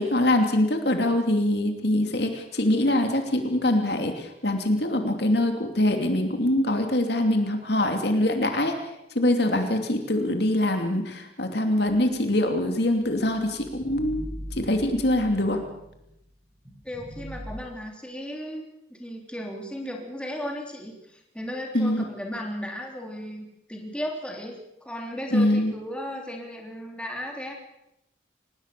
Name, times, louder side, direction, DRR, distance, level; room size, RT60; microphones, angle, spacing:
voice 1, 0.0-8.7 9.1-15.6 21.7-22.0 25.3-25.7, left 1 dB, 55° left, 5 dB, 2.8 m, -24 dB
sound 1, 11.9-16.2 16.6-17.6, equal, 15° right, 7.6 m, -41 dB
voice 2, 16.8-18.6 18.9-27.5, equal, 5° left, 1 dB, 3.3 m, -35 dB
25.0 x 20.0 x 6.8 m, 0.85 s
head